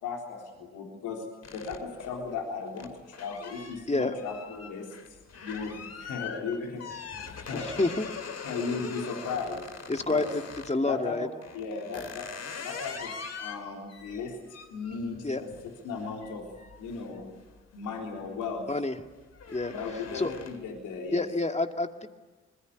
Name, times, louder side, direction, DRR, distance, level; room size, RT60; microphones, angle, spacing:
voice 1, 0.0-1.3 1.5-7.7 8.4-9.7 10.0-10.3 10.8-11.3 11.5-12.3 12.6-14.4 14.7-15.5 15.8-16.5 16.8-17.3 17.7-18.7 19.7-21.3, left 4 dB, 75° left, 1 dB, 3.8 m, -36 dB
sound 1, 1.4-10.8 11.4-17.9 18.3-18.6 18.9-20.8, left 6 dB, 55° left, 2.7 m, -43 dB
voice 2, 7.5-8.1 9.9-10.4 10.7-11.3 15.2-15.4 18.7-19.0 19.5-19.7 20.1-20.3 21.1-22.1, left 2 dB, 20° left, 6 dB, 2.3 m, -28 dB
26.0 x 21.0 x 9.5 m, 1.3 s
hypercardioid pair, 40°, 31 cm